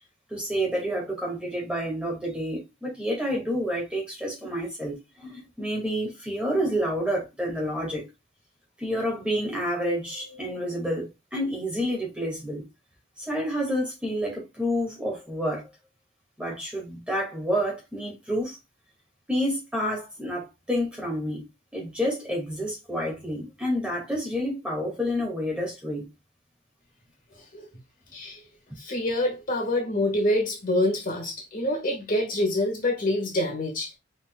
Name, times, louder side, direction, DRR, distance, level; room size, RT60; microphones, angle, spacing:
voice 1, 0.3-8.0 8.8-12.6 13.2-15.7 16.4-18.6 19.3-21.4 21.7-26.0, equal, 5° right, 2.1 m, -29 dB
voice 2, 28.8-34.0, left 1 dB, 40° left, 1.7 m, -26 dB
5.5 x 4.2 x 2.3 m
head